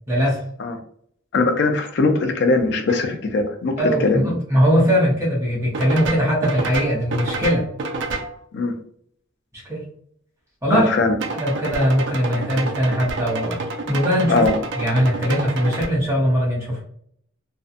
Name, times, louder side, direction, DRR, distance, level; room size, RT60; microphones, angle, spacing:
voice 1, 0.1-0.4 3.8-7.7 9.6-9.8 10.6-10.9 11.3-13.6 13.9-14.4 14.7-16.8, equal, 15° right, -7 dB, 0.8 m, -20 dB
voice 2, 1.3-4.3 8.5-8.7 10.7-11.2 14.3-14.5, left 3 dB, 60° left, 6 dB, 0.4 m, -20 dB
sound 1, 2.9-3.0 5.7-8.4 11.2-15.9, right 3 dB, 60° right, 0.4 m, -29 dB
2.6 x 2.2 x 2.4 m, 0.64 s
head